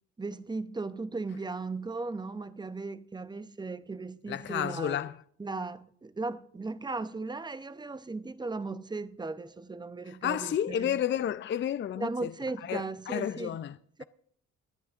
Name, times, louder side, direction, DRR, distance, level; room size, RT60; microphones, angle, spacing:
voice 1, 0.2-5.0 5.4-11.0 12.0-13.6 14.0-14.1, right 3 dB, 15° right, 0.6 m, -37 dB
voice 2, 4.3-5.2 10.1-12.3 12.6-14.0, left 10 dB, 40° left, 0.4 m, -32 dB
25.5 x 10.0 x 2.5 m
cardioid pair, 90°, 30 cm